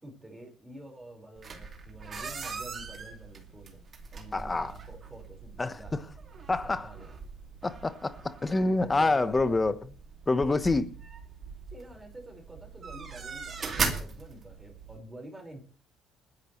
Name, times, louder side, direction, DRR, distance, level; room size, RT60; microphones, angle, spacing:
voice 1, 0.0-3.8 4.1-6.0 6.6-7.1 8.8-9.6 10.5-10.8 11.7-15.6, right 1 dB, 10° right, 5.0 m, -47 dB
sound 1, 1.4-15.0, right 5 dB, 35° right, 2.4 m, -40 dB
voice 2, 4.3-4.7 5.6-6.0 6.5-6.9 7.6-9.8 10.3-10.9, left 3 dB, 15° left, 1.1 m, -27 dB
29.5 x 10.5 x 3.2 m
cardioid pair, 130°, 0 cm